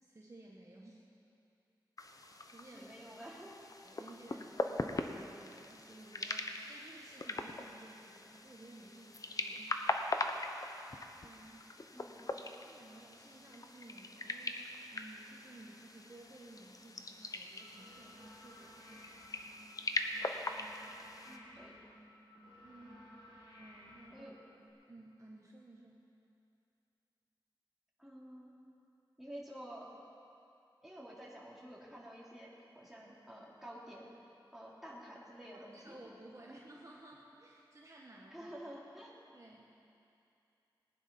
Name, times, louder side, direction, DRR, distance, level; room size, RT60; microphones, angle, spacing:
voice 1, 0.0-1.0 2.5-2.9 3.8-9.8 11.2-11.7 12.6-19.1 22.6-23.1 23.6-24.3 24.6-26.1 35.5-38.5 39.3-39.7, right 2 dB, 40° right, -4 dB, 1.6 m, -56 dB
sound 1, 2.0-21.4, left 2 dB, 45° left, 0.9 m, -41 dB
voice 2, 2.7-3.6 11.9-12.5 21.2-21.8 24.1-24.3 28.0-28.6 29.2-29.9 30.8-34.1 34.5-36.0 36.4-36.6 38.3-39.1, equal, 5° right, -5 dB, 3.2 m, -50 dB
sound 2, 17.6-24.7, equal, 85° left, 3.7 m, -57 dB
19.0 x 10.0 x 5.4 m, 2.7 s
wide cardioid pair, 75°, 8 cm